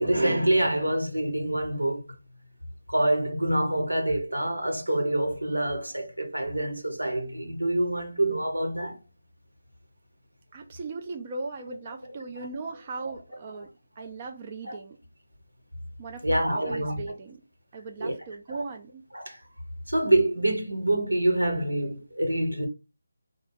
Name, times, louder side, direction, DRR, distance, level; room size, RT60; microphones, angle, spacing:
voice 1, 0.0-2.0 2.9-9.0 14.0-14.1 14.7-14.8 16.2-17.0 18.0-18.1 19.1-19.4 19.9-22.7, right 1 dB, 85° right, 1.5 m, -26 dB
voice 2, 10.5-15.0 16.0-17.4 17.7-19.0, right 3 dB, 30° right, 0.5 m, -38 dB
4.1 x 2.4 x 3.7 m
figure-of-eight pair, 155°, 0 cm